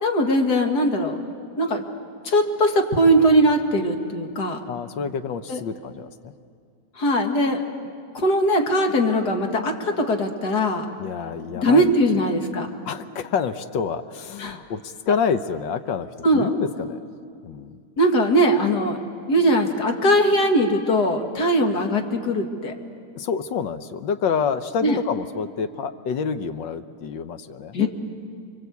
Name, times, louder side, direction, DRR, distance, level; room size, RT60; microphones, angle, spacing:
voice 1, 0.0-1.2 1.6-1.8 2.2-4.6 5.5-5.6 7.0-7.6 8.1-10.9 11.6-12.7 14.4-14.6 16.2-16.5 18.0-19.0 19.3-22.7 24.8-25.0 27.7-27.9, equal, 50° left, 3 dB, 2.3 m, -20 dB
voice 2, 4.7-6.3 11.0-11.9 12.8-17.0 17.4-17.8 23.2-27.9, left 6 dB, 65° left, 10 dB, 1.4 m, -28 dB
30.0 x 23.0 x 8.3 m, 2.3 s
omnidirectional pair, 2.3 m